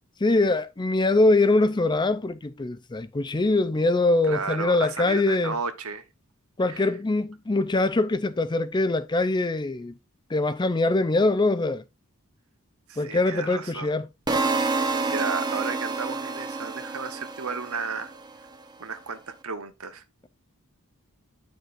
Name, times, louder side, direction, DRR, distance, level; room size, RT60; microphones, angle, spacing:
voice 1, 0.2-5.6 6.6-9.9 10.3-11.8 13.0-14.1, left 2 dB, 20° left, 0.5 m, -23 dB
voice 2, 4.2-6.0 6.7-6.9 12.9-13.9 14.7-18.1 18.8-20.0, right 5 dB, 70° right, 1.0 m, -33 dB
sound 1, 14.3-18.3, right 3 dB, 20° right, 0.8 m, -28 dB
9.4 x 6.5 x 2.5 m
head